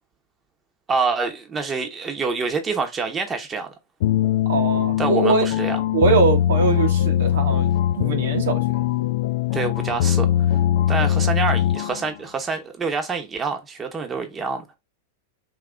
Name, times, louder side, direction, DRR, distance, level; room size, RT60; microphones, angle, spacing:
voice 1, 0.9-3.7 5.0-5.8 9.5-10.3 10.9-14.6, right 4 dB, 20° right, 0.9 m, -26 dB
sound 1, 4.0-12.1, left 11 dB, 60° left, 0.4 m, -21 dB
voice 2, 4.5-5.5 5.9-8.8, right 5 dB, 75° right, 1.2 m, -22 dB
3.8 x 2.8 x 3.4 m
hypercardioid pair, 105°, 0 cm